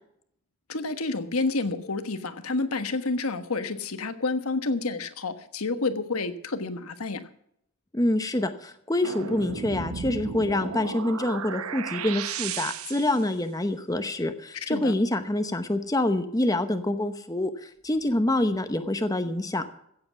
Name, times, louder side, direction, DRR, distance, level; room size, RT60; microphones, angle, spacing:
voice 1, 0.7-7.3 14.5-14.9, left 3 dB, 85° left, 9 dB, 1.3 m, -29 dB
voice 2, 7.9-19.6, left 1 dB, 15° left, 8 dB, 0.9 m, -26 dB
sound 1, 9.0-13.3 18.2-18.8, right 6 dB, 85° right, 0.8 m, -35 dB
16.0 x 8.0 x 7.0 m, 0.72 s
head